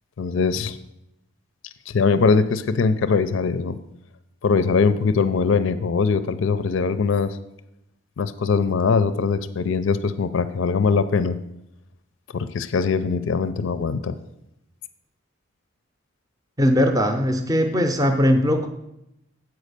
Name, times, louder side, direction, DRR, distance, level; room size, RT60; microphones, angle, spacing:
voice 1, 0.2-0.8 1.9-3.8 4.4-7.4 8.2-11.4 12.3-14.1, left 5 dB, 70° left, 13 dB, 0.4 m, -21 dB
voice 2, 16.6-18.7, equal, 15° right, 6 dB, 0.6 m, -19 dB
8.2 x 4.6 x 6.6 m, 0.85 s
head